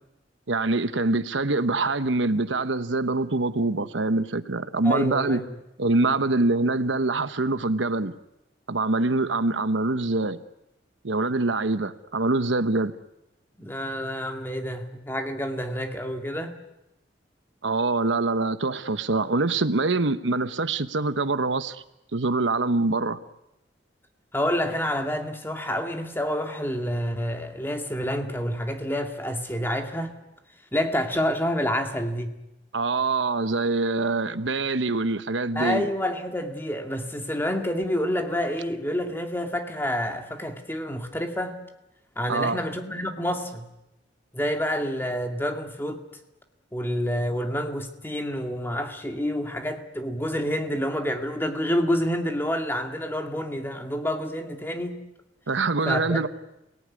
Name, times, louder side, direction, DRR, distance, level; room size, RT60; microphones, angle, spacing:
voice 1, 0.5-5.4 5.8-8.1 8.7-10.4 11.0-12.9 17.6-21.8 22.1-23.2 32.7-35.9 42.3-42.6 55.5-56.3, right 3 dB, 85° right, 1.1 m, -24 dB
voice 2, 4.8-5.4 13.6-16.5 24.3-30.1 30.7-32.3 35.6-41.6 42.2-43.7 44.3-46.0 46.7-55.0 55.8-56.2, equal, 10° left, 2.3 m, -28 dB
28.5 x 18.5 x 9.8 m
head